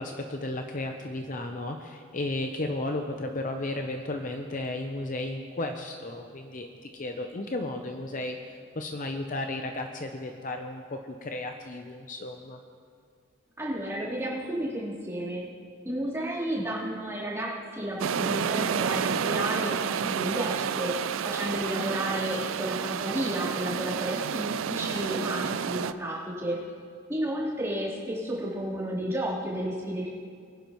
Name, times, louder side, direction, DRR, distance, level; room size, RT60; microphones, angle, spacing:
voice 1, 0.0-6.7 6.9-12.6, left 2 dB, 40° left, 5 dB, 0.6 m, -34 dB
voice 2, 13.6-15.4 15.8-20.9 21.2-26.6 27.1-30.1, right 1 dB, 15° right, -9 dB, 3.5 m, -32 dB
sound 1, 18.0-25.9, right 7 dB, 70° right, 0.4 m, -30 dB
23.0 x 10.5 x 3.1 m, 2.2 s
head